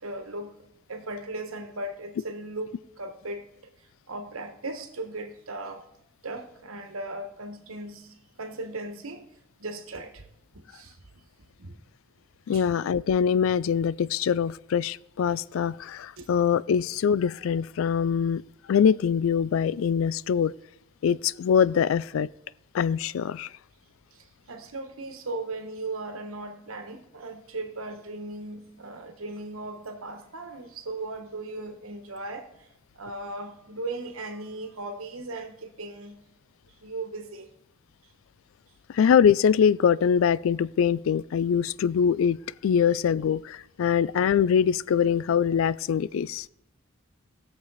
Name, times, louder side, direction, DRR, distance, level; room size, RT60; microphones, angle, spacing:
voice 1, 0.0-0.6 0.9-3.5 3.8-5.8 6.2-9.3 9.6-10.3 10.5-11.0 11.6-11.8 12.5-12.7 16.2-16.3 24.1-32.7 32.9-36.2 36.6-37.5 38.0-38.1, right 2 dB, 85° right, 1.3 m, -37 dB
voice 2, 12.5-18.4 18.7-20.5 21.0-22.3 22.7-23.5 38.9-46.5, left 7 dB, 75° left, 0.3 m, -23 dB
18.0 x 6.7 x 4.1 m
head